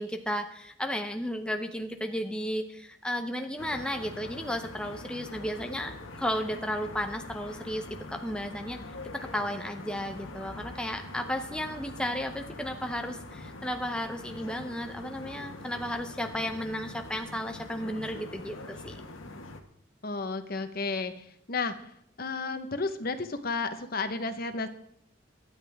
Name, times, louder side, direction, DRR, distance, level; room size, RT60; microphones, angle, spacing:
voice 1, 0.0-8.8 9.1-19.0, equal, 5° left, 5 dB, 0.7 m, -34 dB
sound 1, 3.6-19.6, left 2 dB, 90° left, 1.5 m, -44 dB
voice 2, 20.0-21.7 22.2-24.7, left 4 dB, 50° left, 8 dB, 1.1 m, -32 dB
23.5 x 10.0 x 3.5 m, 0.68 s
head